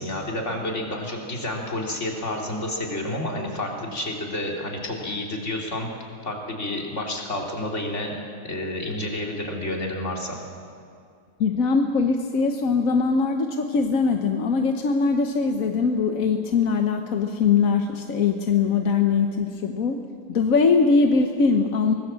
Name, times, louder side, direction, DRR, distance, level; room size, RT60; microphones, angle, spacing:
voice 1, 0.0-5.9 6.2-8.1 8.4-10.4, left 1 dB, 35° left, 0 dB, 3.3 m, -30 dB
voice 2, 11.4-20.0 20.3-21.9, left 5 dB, 50° left, 5 dB, 1.1 m, -21 dB
24.0 x 19.0 x 7.6 m, 2.3 s
omnidirectional pair, 2.3 m